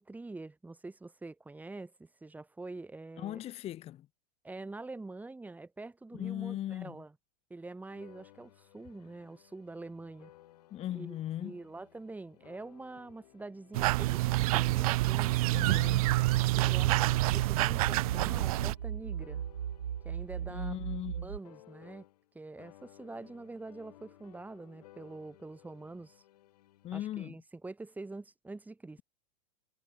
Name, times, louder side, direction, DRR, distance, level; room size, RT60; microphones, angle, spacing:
voice 1, 0.0-3.4 4.4-7.2 7.5-10.3 10.9-14.2 14.5-15.8 16.6-19.4 20.0-20.8 21.2-22.0 22.3-26.2 26.9-29.0, right 2 dB, 5° right, 1.6 m, -45 dB
voice 2, 3.2-4.1 6.2-7.0 10.7-11.5 15.5-16.0 20.5-21.3 26.8-27.3, left 12 dB, 30° left, 0.7 m, -38 dB
sound 1, 7.9-22.3 22.6-27.0, left 14 dB, 70° left, 4.3 m, -60 dB
sound 2, 13.7-18.7, right 19 dB, 60° right, 0.4 m, -27 dB
sound 3, 17.3-21.4, right 9 dB, 85° right, 0.9 m, -37 dB
hypercardioid pair, 100°, 21 cm